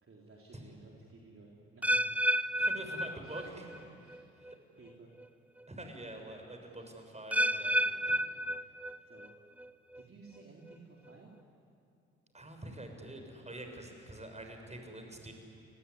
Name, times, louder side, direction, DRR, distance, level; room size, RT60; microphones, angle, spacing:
voice 1, 0.0-2.5 2.8-3.7 4.0-4.3 4.8-5.1 6.6-6.9 7.4-8.1 9.1-9.3 10.0-11.3, right 3 dB, 40° right, -2 dB, 4.2 m, -57 dB
sound 1, 1.8-3.8 4.1-4.5 5.2-5.3 7.3-9.3 9.6-10.0 10.7-10.8, right 1 dB, 5° right, 0.7 m, -31 dB
voice 2, 2.6-3.6 4.4-4.6 5.7-8.1 12.3-15.3, right 1 dB, 20° right, 4 dB, 6.9 m, -46 dB
29.5 x 20.0 x 9.9 m, 2.5 s
hypercardioid pair, 45°, 33 cm